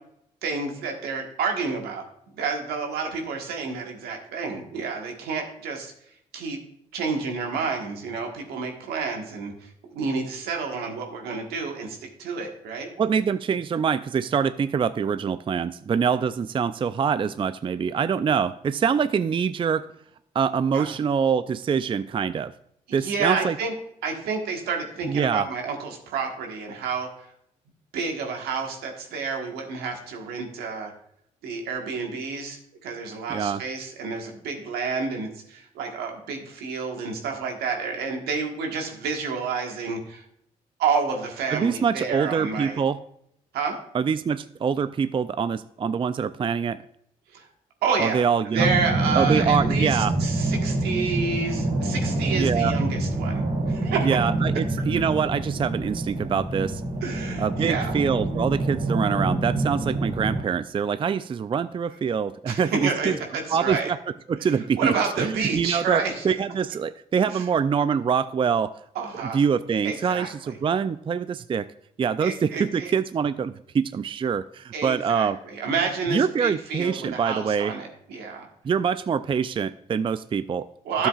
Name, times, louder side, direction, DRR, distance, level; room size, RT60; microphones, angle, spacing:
voice 1, 0.4-2.0 2.3-5.9 6.3-6.6 6.9-12.9 20.7-20.9 22.9-23.7 24.0-27.3 27.9-30.9 31.4-40.2 40.8-42.8 43.5-43.8 47.3-47.5 47.8-48.2 48.5-54.1 57.0-57.9 62.5-63.9 64.4-64.5 64.8-66.3 67.3-67.5 68.9-69.4 69.8-70.6 72.2-72.9 74.7-78.5 80.8-81.1, right 5 dB, 80° right, 2 dB, 1.5 m, -29 dB
voice 2, 13.0-19.9 20.3-22.5 22.9-23.5 25.0-25.5 33.3-33.6 41.5-43.0 43.9-46.8 48.0-48.7 49.1-50.2 52.3-52.8 54.0-56.8 57.4-63.2 63.5-64.0 64.3-64.9 65.2-68.7 69.3-71.7 72.0-75.4 76.1-77.7 78.6-80.7 81.0-81.1, right 6 dB, 35° right, 14 dB, 0.4 m, -25 dB
sound 1, 48.6-60.4, right 2 dB, 55° right, 2.6 m, -26 dB
12.5 x 7.3 x 2.4 m, 0.72 s
supercardioid pair, 50°, 16 cm